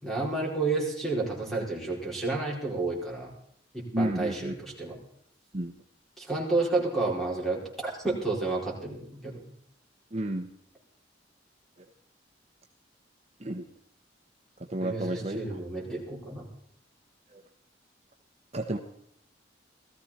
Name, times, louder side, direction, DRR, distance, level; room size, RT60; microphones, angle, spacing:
voice 1, 0.0-3.3 3.7-5.0 6.2-9.4 14.8-16.4, right 3 dB, ahead, -3 dB, 4.9 m, -31 dB
voice 2, 3.9-4.5 5.5-5.7 10.1-10.5 13.4-13.6 14.7-15.4 17.3-17.4 18.5-18.8, right 1 dB, 35° right, 3 dB, 1.0 m, -31 dB
18.0 x 14.0 x 4.3 m, 0.69 s
head